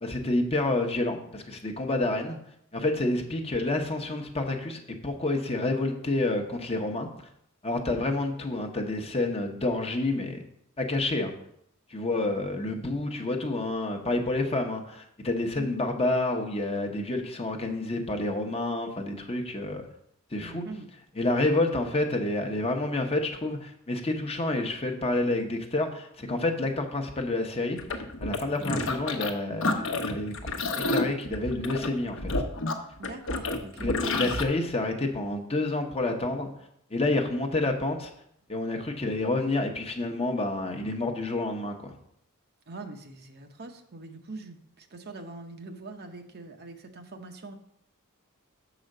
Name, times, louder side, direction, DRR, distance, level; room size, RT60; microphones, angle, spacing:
voice 1, 0.0-2.4 2.7-7.1 7.6-10.4 10.8-11.3 11.9-19.9 20.3-20.6 21.2-27.8 28.2-30.3 30.9-32.3 33.8-36.5 36.9-38.1 38.5-41.9, left 2 dB, 25° left, 4 dB, 0.9 m, -29 dB
voice 2, 20.4-20.9 28.6-28.7 33.0-34.3 42.7-47.5, right 2 dB, 45° right, 5 dB, 0.8 m, -43 dB
sound 1, 27.8-29.3 29.6-34.4, left 2 dB, 60° left, 0.9 m, -30 dB
6.9 x 5.0 x 6.5 m, 0.72 s
head